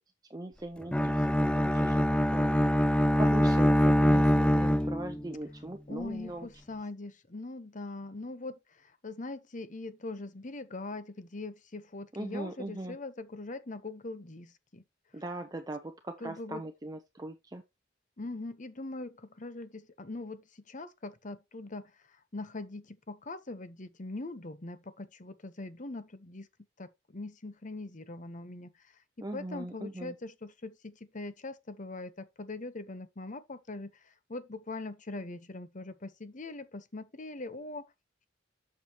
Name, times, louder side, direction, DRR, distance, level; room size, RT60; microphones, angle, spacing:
voice 1, 0.3-2.0 2.3-2.6 2.8-6.5 12.2-13.0 15.1-17.6 29.2-30.1, right 1 dB, 20° right, 0.7 m, -40 dB
Bowed string instrument, 0.9-5.3, equal, 5° left, 0.4 m, -24 dB
voice 2, 5.9-14.8 16.2-16.6 18.2-21.9 22.3-26.5 26.8-28.7 29.2-33.9 34.3-37.8, left 2 dB, 40° left, 0.9 m, -41 dB
8.4 x 6.8 x 3.0 m
head